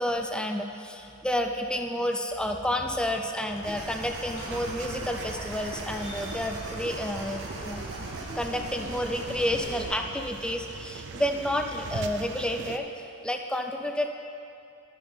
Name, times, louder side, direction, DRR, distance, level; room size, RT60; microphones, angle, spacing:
voice 1, 0.0-7.9 8.3-12.9 13.2-14.1, left 1 dB, 5° left, 4 dB, 0.4 m, -30 dB
sound 1, 3.2-9.8, left 1 dB, 45° left, 2.5 m, -51 dB
sound 2, 3.6-9.9, right 1 dB, 70° right, 2.8 m, -39 dB
sound 3, 4.5-12.8, right 4 dB, 55° right, 0.5 m, -41 dB
11.5 x 10.0 x 3.8 m, 2.6 s
head